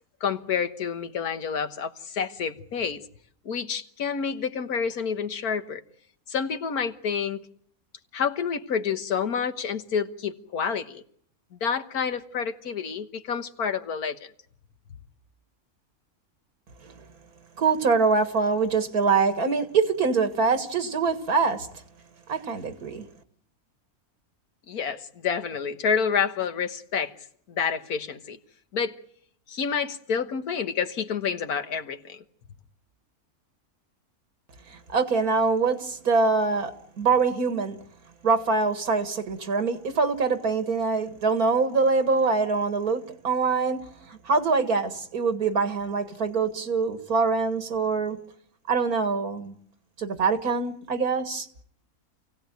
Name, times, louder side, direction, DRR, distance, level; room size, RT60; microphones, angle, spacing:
voice 1, 0.2-3.0 3.5-5.8 6.3-7.4 8.1-11.0 11.6-14.3 24.7-27.1 27.5-28.4 28.7-29.0 29.5-32.2, left 6 dB, 85° left, 1.8 m, -28 dB
voice 2, 17.6-21.7 22.3-23.0 34.7-37.8 38.2-43.8 44.1-48.2 48.7-49.5 50.0-51.5, right 4 dB, 85° right, 2.3 m, -24 dB
27.5 x 17.0 x 9.2 m
omnidirectional pair, 1.5 m